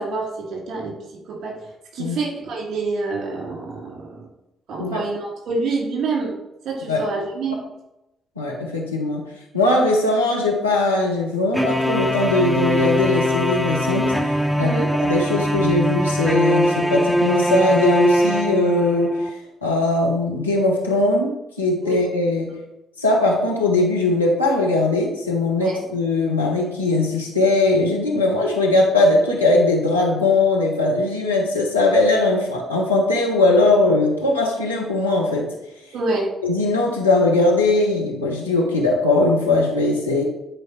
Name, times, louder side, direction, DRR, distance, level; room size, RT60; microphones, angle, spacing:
voice 1, 0.0-1.6 1.9-4.3 4.7-6.3 6.6-7.6 14.6-15.0 21.8-22.0 25.6-25.8 35.9-36.3, right 3 dB, 55° right, -2 dB, 2.4 m, -27 dB
voice 2, 8.4-9.2 9.5-14.1 14.6-14.8 15.0-19.2 19.6-22.5 23.0-35.5 36.4-40.2, left 2 dB, 90° left, -3 dB, 1.0 m, -20 dB
sound 1, 11.5-19.3, equal, 5° right, 0.6 m, -21 dB
10.0 x 4.6 x 3.1 m, 0.91 s
figure-of-eight pair, 40°, 0 cm